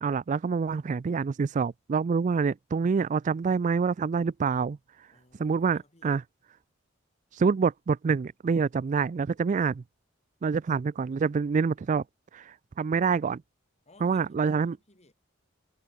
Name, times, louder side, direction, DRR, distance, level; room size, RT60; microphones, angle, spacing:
voice 1, 0.0-4.8 5.4-6.2 7.3-9.8 10.4-12.0 12.3-13.4 14.0-14.8, right 5 dB, 35° right, 0.3 m, -26 dB
voice 2, 5.1-6.1 13.8-15.1, left 1 dB, 30° left, 6.8 m, -59 dB
head